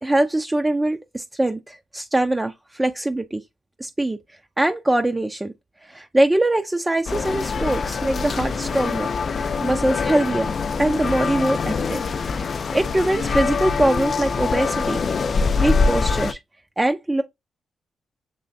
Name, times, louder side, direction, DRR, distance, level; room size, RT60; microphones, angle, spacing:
voice 1, 0.0-3.4 3.8-4.2 4.6-5.5 5.8-9.1 9.3-10.5 10.8-12.0 12.4-15.0 15.6-16.4 16.8-17.2, right 1 dB, 15° right, 0.4 m, -22 dB
sound 1, 7.1-16.3, left 4 dB, 50° left, 0.4 m, -24 dB
6.7 x 3.0 x 2.6 m
cardioid pair, 90°, 0 cm